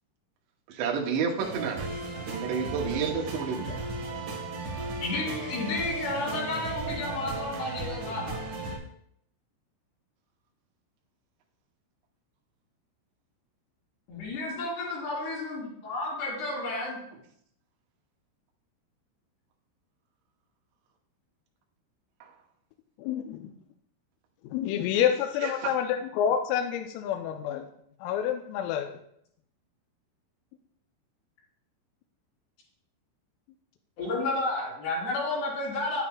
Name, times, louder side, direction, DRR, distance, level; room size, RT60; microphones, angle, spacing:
voice 1, 0.7-1.9 2.2-3.8 25.0-25.7, right 6 dB, 75° right, 1 dB, 2.8 m, -31 dB
sound 1, 1.4-8.8, right 3 dB, 50° right, 2.5 m, -35 dB
voice 2, 5.0-8.5 14.1-17.0 34.0-36.0, left 2 dB, 55° left, -7 dB, 5.5 m, -31 dB
voice 3, 23.0-23.5 24.4-27.7 28.0-28.9, left 9 dB, 85° left, 4 dB, 3.2 m, -28 dB
9.5 x 8.9 x 2.3 m, 0.71 s
omnidirectional pair, 5.9 m